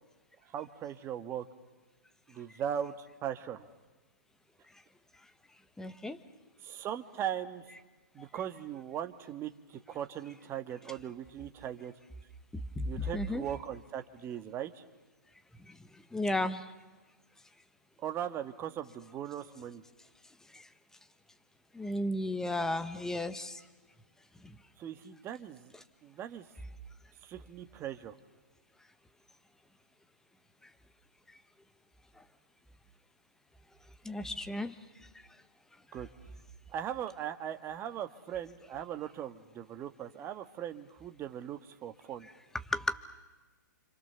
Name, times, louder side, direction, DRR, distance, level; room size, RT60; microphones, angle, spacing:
voice 1, 0.5-1.4 2.3-3.7 6.6-7.7 8.1-11.9 12.8-14.8 18.0-19.8 24.8-25.7 26.0-26.4 27.2-28.1 35.9-36.1 36.7-42.3, right 10 dB, 25° right, 8 dB, 1.5 m, -39 dB
voice 2, 5.8-6.2 12.8-13.4 16.1-16.6 21.7-23.6 34.0-34.7 42.7-43.0, left 1 dB, 5° left, 10 dB, 1.2 m, -33 dB
29.5 x 27.0 x 6.9 m, 1.2 s
hypercardioid pair, 130°, 10 cm